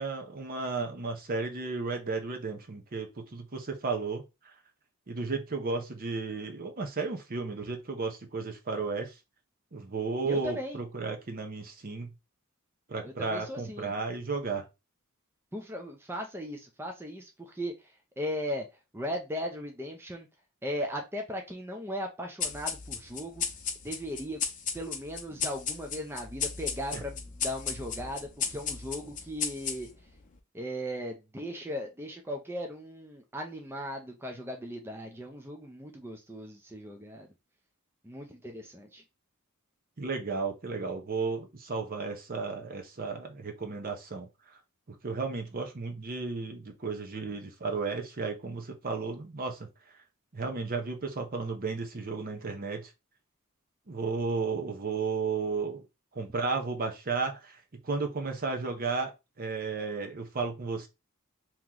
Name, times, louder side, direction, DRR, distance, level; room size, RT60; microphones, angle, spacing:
voice 1, 0.0-4.2 5.1-9.1 9.7-12.1 12.9-14.7 40.0-44.3 44.9-49.7 50.3-52.9 53.9-55.8 56.1-57.5 57.8-59.1 59.4-60.9, right 4 dB, 45° right, 0.8 m, -33 dB
voice 2, 10.2-10.8 13.0-13.9 15.5-18.7 18.9-20.3 20.6-23.4 23.8-24.4 24.7-29.9 30.5-37.3 38.0-39.0, equal, 10° right, 0.5 m, -37 dB
sound 1, 22.4-30.1, left 6 dB, 40° left, 0.7 m, -35 dB
3.0 x 3.0 x 3.7 m
head